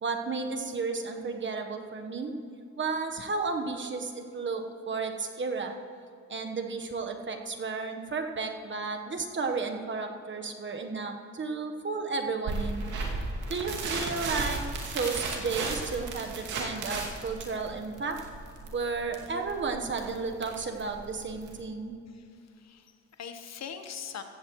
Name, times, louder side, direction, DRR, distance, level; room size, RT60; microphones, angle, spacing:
voice 1, 0.0-2.4 2.8-5.7 6.3-12.8 13.5-18.2 18.7-22.0, right 4 dB, 40° right, 4 dB, 1.2 m, -33 dB
sound 1, 12.5-21.6, right 3 dB, 75° right, 2.5 m, -35 dB
voice 2, 22.1-24.2, left 7 dB, 60° left, 7 dB, 1.2 m, -42 dB
15.5 x 15.5 x 3.1 m, 2.5 s
cardioid pair, 90°, 30 cm